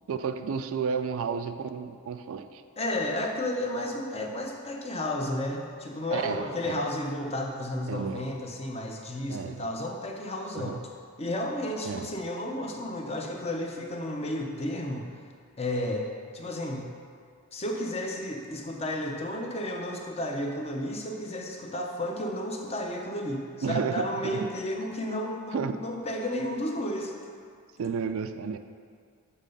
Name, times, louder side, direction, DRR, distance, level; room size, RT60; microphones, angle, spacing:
voice 1, 0.1-2.6 6.1-6.8 7.9-8.3 9.3-9.6 10.6-10.8 11.8-12.1 23.6-24.5 25.1-25.2 25.5-25.7 27.8-28.6, right 6 dB, 65° right, 9 dB, 0.3 m, -32 dB
voice 2, 2.8-10.8 11.2-15.1 15.6-16.1 16.3-16.9 17.5-27.1, left 1 dB, 25° left, 1 dB, 0.6 m, -32 dB
7.4 x 4.2 x 5.3 m, 2.2 s
head